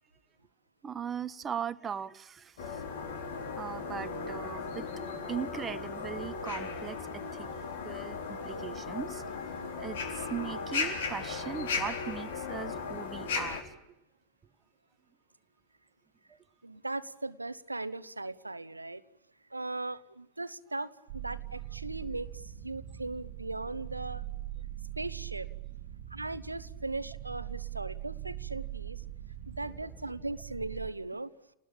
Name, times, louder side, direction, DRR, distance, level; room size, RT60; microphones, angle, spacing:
voice 1, 0.8-2.8 3.6-4.9 5.2-7.5 7.8-13.7, right 7 dB, 20° right, 13 dB, 1.3 m, -39 dB
sound 1, 2.6-13.6, left 4 dB, 60° left, 4.3 m, -36 dB
voice 2, 16.6-19.0 19.5-24.2 25.0-25.5 26.1-29.0 29.5-31.3, right 2 dB, 85° right, 16 dB, 1.1 m, -38 dB
sound 2, 21.1-30.9, right 13 dB, 50° right, 1.6 m, -42 dB
29.5 x 20.0 x 8.8 m, 0.90 s
figure-of-eight pair, 90°, 0 cm